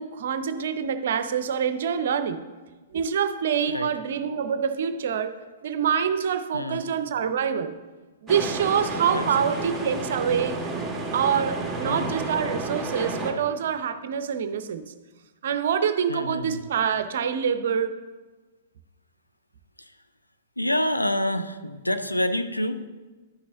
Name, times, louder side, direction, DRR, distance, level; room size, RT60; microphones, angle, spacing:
voice 1, 0.0-2.4 2.9-5.4 5.6-7.7 8.2-10.8 11.1-14.9 15.4-18.0, right 7 dB, 55° right, 11 dB, 0.6 m, -26 dB
voice 2, 6.5-6.9 9.1-9.6 11.8-12.1 16.1-16.6 19.8-19.9 20.6-22.9, left 1 dB, 90° left, 9 dB, 0.5 m, -28 dB
sound 1, 8.3-13.3, right 3 dB, 5° right, 1.5 m, -31 dB
11.5 x 6.1 x 3.7 m, 1.3 s
figure-of-eight pair, 110°, 0 cm